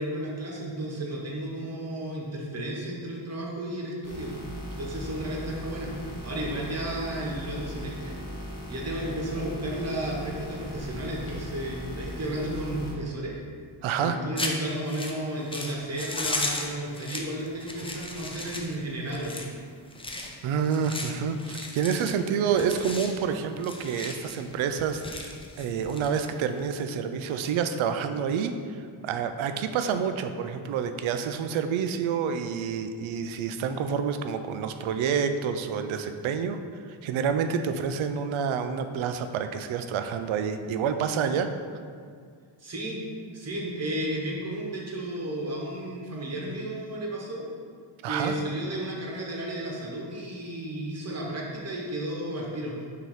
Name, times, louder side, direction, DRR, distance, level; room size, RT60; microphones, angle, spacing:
voice 1, 0.0-4.3 4.8-5.9 6.2-8.2 8.7-13.4 14.0-19.4 42.6-43.0 43.3-47.5 48.0-52.7, right 1 dB, 35° right, -3 dB, 1.2 m, -33 dB
sound 1, 4.0-12.9, equal, 35° left, 1.2 m, -38 dB
voice 2, 13.8-14.2 20.4-25.3 25.6-36.6 36.9-41.5 48.0-48.4, right 7 dB, 85° right, 8 dB, 0.6 m, -28 dB
sound 2, 14.4-26.7, left 2 dB, 10° left, 0.5 m, -36 dB
5.9 x 3.0 x 5.6 m, 2.1 s
wide cardioid pair, 130°, 46 cm